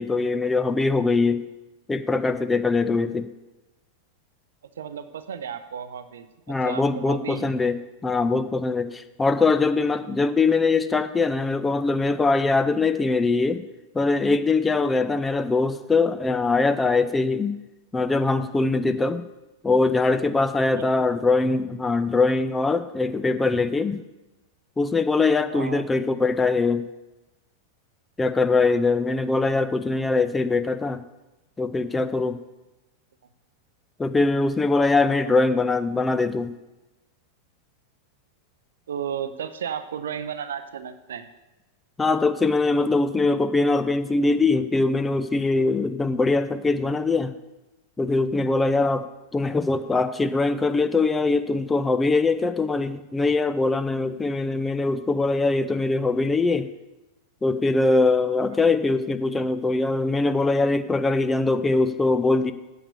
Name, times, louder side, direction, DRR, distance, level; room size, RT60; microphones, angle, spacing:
voice 1, 0.0-1.5 1.9-3.3 6.5-13.6 13.9-17.5 17.9-19.2 19.6-24.0 24.8-26.9 28.2-31.0 31.6-32.4 34.0-36.5 42.0-47.3 48.0-56.7 57.4-62.5, left 3 dB, 10° left, 11 dB, 0.5 m, -22 dB
voice 2, 4.8-7.5 20.7-20.8 25.5-25.9 35.2-35.3 38.9-41.3 58.5-58.7, right 8 dB, 65° right, 11 dB, 0.6 m, -34 dB
8.7 x 6.6 x 6.7 m, 1.1 s
figure-of-eight pair, 90°, 0 cm